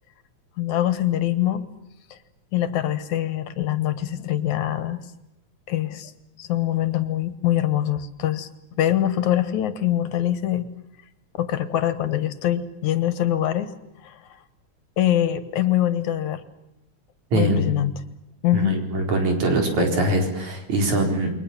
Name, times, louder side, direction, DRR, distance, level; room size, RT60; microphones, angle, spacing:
voice 1, 0.6-1.7 2.1-2.2 2.5-5.0 5.7-6.1 6.4-8.5 8.8-10.7 11.4-13.7 14.0-14.2 15.0-16.4 17.3-17.9 18.4-18.8, left 12 dB, 75° left, 13 dB, 2.8 m, -23 dB
voice 2, 17.3-17.7 18.5-21.3, right 1 dB, 70° right, 3 dB, 5.7 m, -22 dB
29.0 x 22.5 x 7.4 m, 0.88 s
omnidirectional pair, 3.4 m